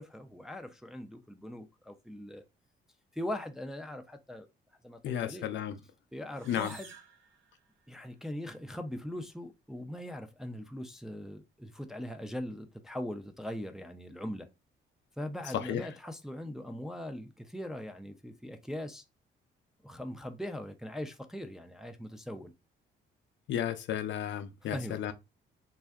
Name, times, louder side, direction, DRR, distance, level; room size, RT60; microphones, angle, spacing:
voice 1, 0.0-2.4 3.1-4.5 4.8-5.5 6.1-6.9 7.9-14.5 15.2-19.0 19.8-22.5 24.7-25.0, left 1 dB, ahead, 0.3 m, -40 dB
voice 2, 5.0-5.8 6.4-6.7 15.5-15.9 23.5-25.1, left 10 dB, 65° left, 0.4 m, -33 dB
sound 1, 6.3-8.1, right 4 dB, 80° right, 0.6 m, -53 dB
2.5 x 2.3 x 2.2 m
cardioid pair, 90°, 20 cm